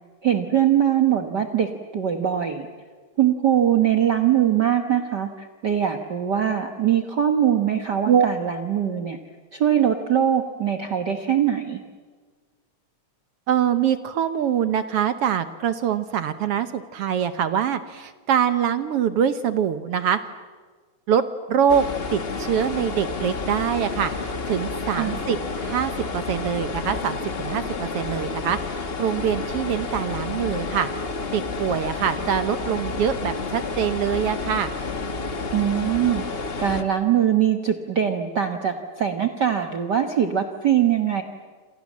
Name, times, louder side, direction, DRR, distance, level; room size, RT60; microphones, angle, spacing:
voice 1, 0.2-2.7 3.2-9.2 9.5-11.8 24.9-25.2 35.5-36.2 36.6-41.2, right 10 dB, 50° right, 6 dB, 1.5 m, -22 dB
voice 2, 13.5-20.2 21.1-21.2 21.5-21.8 22.1-30.9 31.3-34.7, right 8 dB, 65° right, 11 dB, 1.7 m, -24 dB
sound 1, 21.7-36.8, left 3 dB, 90° left, 0.5 m, -30 dB
28.0 x 28.0 x 7.4 m, 1.5 s
omnidirectional pair, 3.3 m